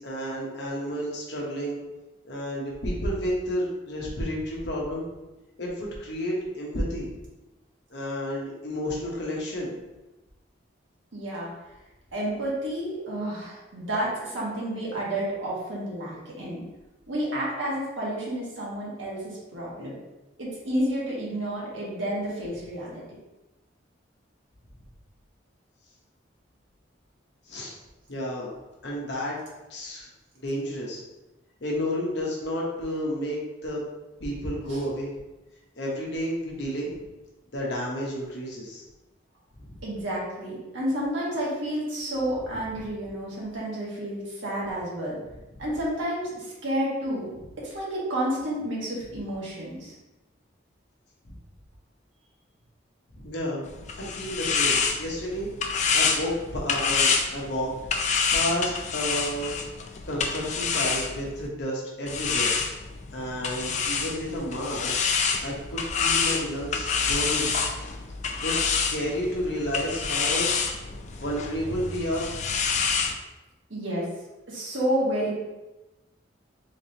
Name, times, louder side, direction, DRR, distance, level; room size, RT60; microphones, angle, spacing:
voice 1, 0.0-1.8 2.2-5.1 5.6-7.2 7.9-9.8 27.5-27.7 28.1-28.5 28.8-29.4 29.7-30.1 30.4-31.0 31.6-33.8 34.2-35.1 35.8-37.0 37.5-38.8 39.6-39.8 45.5-45.6 51.2-51.3 53.1-53.7 54.0-57.7 58.3-59.7 60.1-62.5 63.1-65.0 65.4-67.6 68.4-70.5 71.1-72.4 72.8-72.9, equal, 65° left, -3 dB, 1.0 m, -31 dB
voice 2, 11.1-11.5 12.1-16.6 17.1-19.9 20.4-23.0 34.7-34.9 39.8-45.2 45.6-47.3 47.6-49.9 73.7-74.0 74.5-75.3, right 1 dB, 90° right, -6 dB, 1.4 m, -30 dB
sound 1, 53.6-61.5 62.1-73.1, left 5 dB, 35° left, 0.3 m, -27 dB
3.7 x 3.4 x 2.8 m, 1.0 s
head